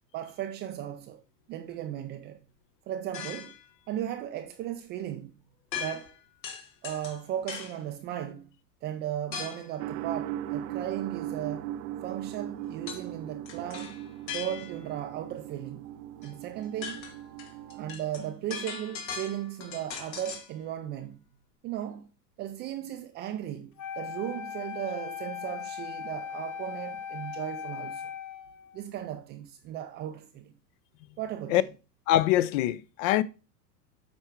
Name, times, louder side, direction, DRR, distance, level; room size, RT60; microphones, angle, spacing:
voice 1, 0.1-1.2 1.5-2.4 2.9-3.5 3.9-5.4 5.7-6.1 6.8-8.5 8.8-11.7 12.0-14.0 14.3-17.1 17.7-21.3 21.6-22.1 22.4-28.1 28.7-30.5 31.2-31.7, right 11 dB, 25° right, 0.3 m, -36 dB
sound 1, 3.1-3.7 5.7-6.2 6.4-7.8 9.3-9.7 12.9-13.1 13.5-14.9 16.2-16.3 16.6-20.5, left 6 dB, 85° left, 2.2 m, -39 dB
sound 2, 9.8-17.9, right 12 dB, 65° right, 0.8 m, -38 dB
Wind instrument woodwind instrument, 23.8-28.9, left 8 dB, 35° left, 1.1 m, -39 dB
voice 2, 32.1-33.2, left 13 dB, 50° left, 0.6 m, -23 dB
8.5 x 4.5 x 4.5 m
hypercardioid pair, 120°, 50 cm